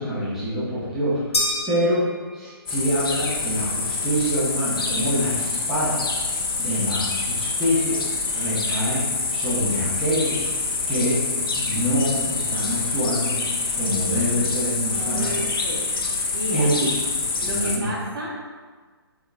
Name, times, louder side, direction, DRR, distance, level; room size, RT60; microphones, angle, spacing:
voice 1, 0.0-2.0 2.3-6.0 6.6-9.0 9.3-10.5 10.9-11.2 11.5-13.4 13.7-15.4 16.5-16.9 17.2-17.9, equal, 5° right, -12 dB, 1.2 m, -25 dB
sound 1, 1.3-2.8, left 2 dB, 80° left, 1.0 m, -28 dB
sound 2, 2.7-17.8, left 3 dB, 60° left, 0.7 m, -26 dB
voice 2, 14.9-15.8 16.1-16.7 17.4-18.5, equal, 60° right, -5 dB, 1.3 m, -32 dB
4.3 x 4.2 x 2.3 m, 1.4 s
figure-of-eight pair, 140°, 13 cm